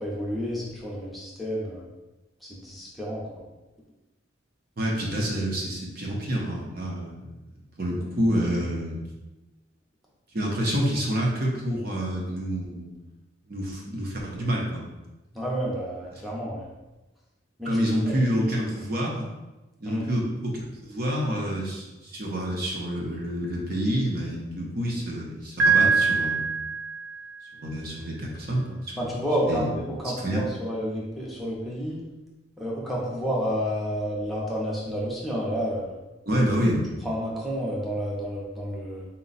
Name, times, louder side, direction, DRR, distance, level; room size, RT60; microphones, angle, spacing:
voice 1, 0.0-1.9 2.4-3.4 15.3-16.7 17.6-18.2 19.8-20.1 29.0-32.0 32.6-36.0 37.0-39.1, equal, ahead, -5 dB, 0.6 m, -30 dB
voice 2, 4.8-9.0 10.3-12.9 13.5-14.8 16.1-16.2 17.6-19.3 19.8-26.4 27.5-29.2 29.5-29.7 30.0-30.4 36.3-36.8, equal, 55° right, -2 dB, 0.8 m, -28 dB
Piano, 25.6-27.5, right 4 dB, 80° right, 0.5 m, -23 dB
4.2 x 2.2 x 3.9 m, 1.1 s
head